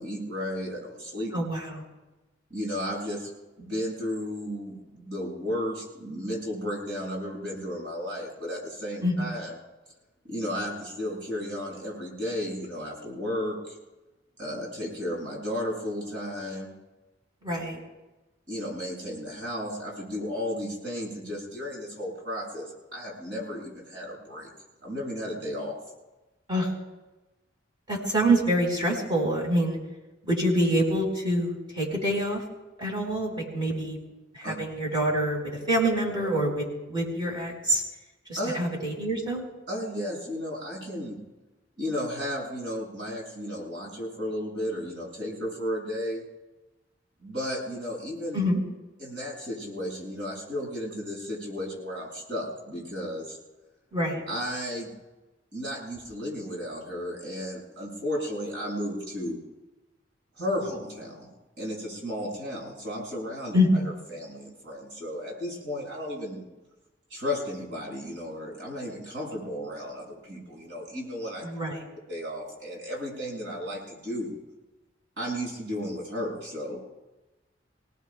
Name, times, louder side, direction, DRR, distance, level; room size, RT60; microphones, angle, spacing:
voice 1, 0.0-1.3 2.5-3.3 3.6-9.6 10.3-13.8 14.4-16.7 18.5-24.5 24.8-25.8 34.4-34.5 38.4-38.6 39.7-41.2 41.8-46.2 47.2-48.4 49.0-53.4 54.3-54.9 55.5-59.4 60.4-61.3 61.6-66.5 67.1-71.5 72.1-74.4 75.2-76.8, equal, 70° right, -3 dB, 6.8 m, -34 dB
voice 2, 1.3-1.8 9.0-9.3 17.4-17.8 26.5-26.7 27.9-29.8 30.3-32.4 32.8-34.0 34.4-37.8 38.3-39.4 48.3-48.6 53.9-54.2 63.5-63.9 71.4-71.8, right 1 dB, 25° right, -2 dB, 4.9 m, -26 dB
29.0 x 18.5 x 2.4 m, 1.1 s
head